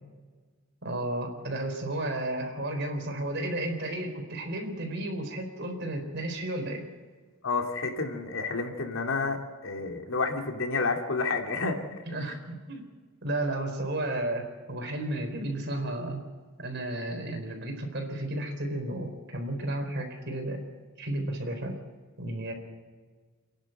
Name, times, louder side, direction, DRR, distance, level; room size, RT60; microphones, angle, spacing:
voice 1, 0.8-6.8 12.1-12.8 13.2-16.2 16.6-20.6 21.0-21.8 22.2-22.5, right 1 dB, 55° right, 4 dB, 4.2 m, -33 dB
voice 2, 7.4-11.8 12.2-12.3, left 3 dB, 80° left, 3 dB, 2.7 m, -30 dB
29.0 x 11.0 x 8.0 m, 1.4 s
head